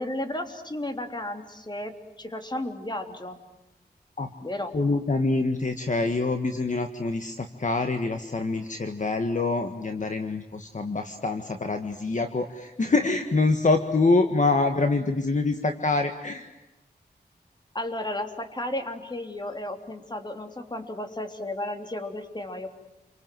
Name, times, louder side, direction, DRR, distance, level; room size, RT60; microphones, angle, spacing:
voice 1, 0.0-3.4 4.4-4.7 17.7-22.8, left 1 dB, 25° left, 6 dB, 3.3 m, -33 dB
voice 2, 4.7-16.5, left 3 dB, 45° left, 6 dB, 1.7 m, -25 dB
29.5 x 25.0 x 7.8 m, 1.0 s
wide cardioid pair, 80°, 17 cm